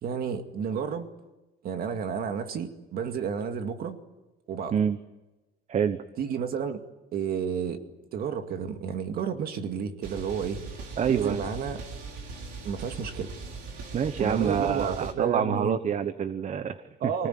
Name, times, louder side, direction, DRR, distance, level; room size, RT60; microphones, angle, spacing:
voice 1, 0.0-1.1 1.6-4.0 4.5-4.8 6.2-6.8 7.1-7.8 8.1-10.6 11.1-11.8 12.6-13.3 14.2-15.8 17.0-17.3, right 7 dB, 60° right, 7 dB, 2.3 m, -31 dB
voice 2, 5.7-6.0 11.0-11.5 13.9-17.3, right 7 dB, 45° right, 12 dB, 1.1 m, -27 dB
sound 1, 10.0-15.1, right 3 dB, 85° right, 4.1 m, -40 dB
25.0 x 19.0 x 9.4 m, 1.1 s
cardioid pair, 110°, 17 cm